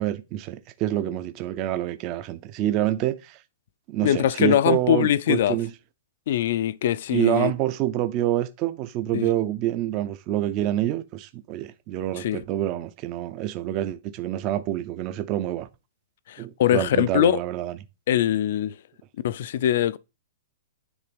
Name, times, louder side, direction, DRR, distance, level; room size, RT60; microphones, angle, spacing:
voice 1, 0.0-3.4 3.9-5.7 7.1-15.7 16.4-17.8, right 13 dB, 25° right, 0.5 m, -27 dB
voice 2, 4.0-5.6 6.3-7.5 9.1-9.3 12.2-12.4 16.3-17.4 18.1-18.7 19.2-20.0, left 11 dB, 50° left, 0.5 m, -22 dB
9.7 x 3.5 x 5.1 m
hypercardioid pair, 170°, 0 cm